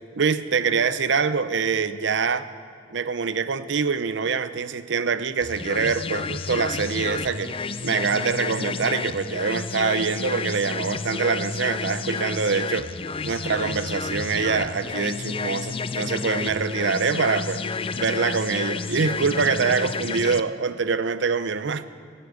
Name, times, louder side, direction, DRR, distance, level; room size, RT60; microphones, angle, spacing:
voice 1, 0.2-2.5 2.9-7.5 7.8-12.9 13.2-17.6 17.9-21.8, right 5 dB, 65° right, 13 dB, 0.6 m, -24 dB
sound 1, 5.4-20.4, left 4 dB, 30° left, 0.4 m, -30 dB
16.0 x 8.5 x 9.5 m, 2.1 s
head